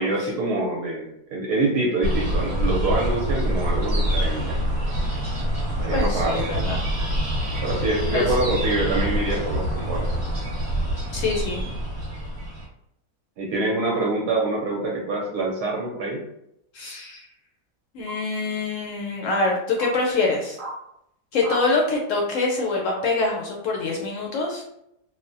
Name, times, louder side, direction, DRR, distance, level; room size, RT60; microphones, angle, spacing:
voice 1, 0.0-4.6 5.8-6.5 7.6-10.2 13.4-16.2, right 2 dB, 75° right, -2 dB, 1.1 m, -25 dB
sound 1, 2.0-12.7, equal, 10° right, 0.9 m, -25 dB
voice 2, 5.9-6.8 8.1-8.3 11.1-11.6 16.7-17.2 17.9-20.6 21.3-24.6, left 3 dB, 70° left, 0 dB, 0.7 m, -25 dB
sound 2, 18.1-18.2 19.0-19.1 19.8-19.9 20.6-20.8 21.4-21.7, right 2 dB, 45° right, 0.9 m, -34 dB
3.3 x 2.1 x 2.5 m, 0.78 s
omnidirectional pair, 1.8 m